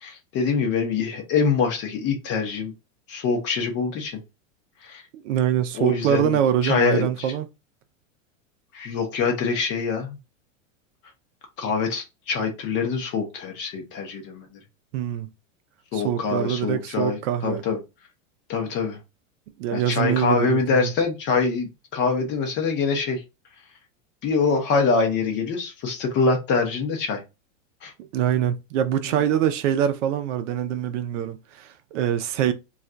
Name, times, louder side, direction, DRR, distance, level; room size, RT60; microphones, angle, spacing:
voice 1, 0.0-2.7 3.1-4.2 4.8-5.0 5.7-7.3 8.7-10.2 11.6-14.5 15.9-17.8 18.5-19.0 19.7-23.2 24.2-27.2 27.8-27.9, left 5 dB, 30° left, 0.7 m, -24 dB
voice 2, 5.1-7.5 14.9-15.3 15.9-17.6 19.6-20.9 28.0-32.5, right 10 dB, 65° right, 0.5 m, -24 dB
2.4 x 2.2 x 3.7 m
supercardioid pair, 155°, 39 cm